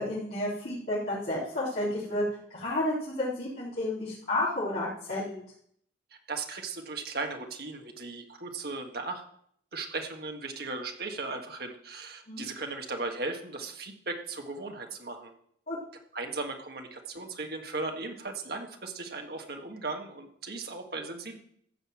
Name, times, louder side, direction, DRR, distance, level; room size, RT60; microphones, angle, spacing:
voice 1, 0.0-2.2 2.5-5.4 12.3-12.4 15.7-15.8, left 1 dB, 55° left, -12 dB, 4.0 m, -31 dB
voice 2, 6.3-9.2 9.7-15.3 16.1-21.4, right 3 dB, 55° right, 4 dB, 1.7 m, -37 dB
15.0 x 5.5 x 7.5 m, 0.67 s
head